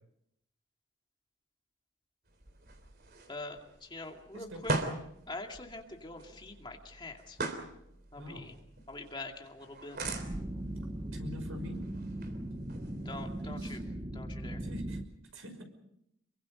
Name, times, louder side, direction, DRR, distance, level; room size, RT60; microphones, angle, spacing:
sound 1, 2.3-13.6, right 2 dB, 50° right, 3.3 m, -42 dB
voice 1, 3.3-4.7 5.3-7.4 8.1-8.5 8.9-10.0 13.1-13.8 14.1-14.6, left 2 dB, 20° left, 2 dB, 2.4 m, -44 dB
voice 2, 4.3-4.7 8.2-8.5 11.1-11.8 13.4-13.8 14.6-15.0 15.3-15.6, left 1 dB, 85° right, 6 dB, 5.8 m, -44 dB
sound 2, 10.0-15.0, right 1 dB, 25° right, 1.3 m, -39 dB
28.0 x 23.5 x 5.3 m, 0.77 s
head